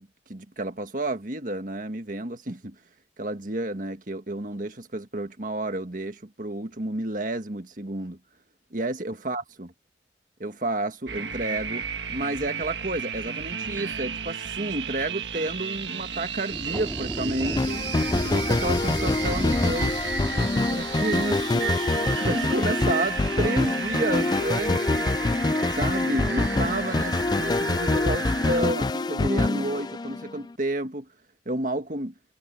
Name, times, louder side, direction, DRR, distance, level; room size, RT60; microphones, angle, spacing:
voice 1, 0.0-2.7 3.2-8.2 8.7-9.7 10.4-11.8 12.1-17.8 18.2-21.8 22.1-25.1 25.7-31.1 31.4-32.1, right 1 dB, 45° right, 1.8 m, -31 dB
sound 1, 11.1-28.6, right 6 dB, 80° right, 1.5 m, -33 dB
sound 2, 16.5-22.1, equal, 5° left, 2.3 m, -34 dB
sound 3, 17.6-30.5, left 2 dB, 25° left, 0.4 m, -25 dB
head